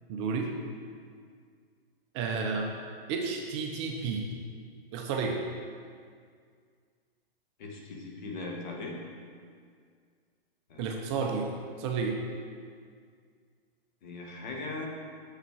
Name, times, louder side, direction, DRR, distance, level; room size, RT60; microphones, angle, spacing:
voice 1, 0.1-0.5 2.1-2.7 3.1-4.3 4.9-5.4 10.8-12.2, right 5 dB, 30° right, 2 dB, 0.6 m, -31 dB
voice 2, 7.6-9.0 10.7-11.0 14.0-14.9, left 3 dB, 50° left, 0 dB, 1.5 m, -39 dB
6.8 x 5.7 x 4.6 m, 2.1 s
hypercardioid pair, 140°, 30 cm